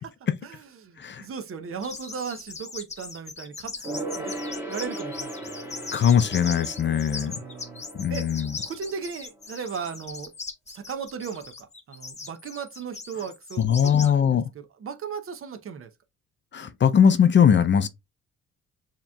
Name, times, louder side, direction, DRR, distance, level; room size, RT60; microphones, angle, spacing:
voice 1, 0.4-4.4 4.7-5.9 7.1-8.3 8.6-10.3 10.7-14.4 14.8-15.9, right 6 dB, 45° right, 0.7 m, -37 dB
sound 1, 1.8-14.1, left 4 dB, 20° left, 0.9 m, -39 dB
Gong, 3.8-9.7 10.0-10.1, right 1 dB, 10° right, 1.5 m, -38 dB
voice 2, 5.9-7.3 7.9-8.6 13.6-14.4 16.5-17.9, left 8 dB, 40° left, 0.5 m, -20 dB
6.9 x 2.9 x 2.2 m
cardioid pair, 90°, 30 cm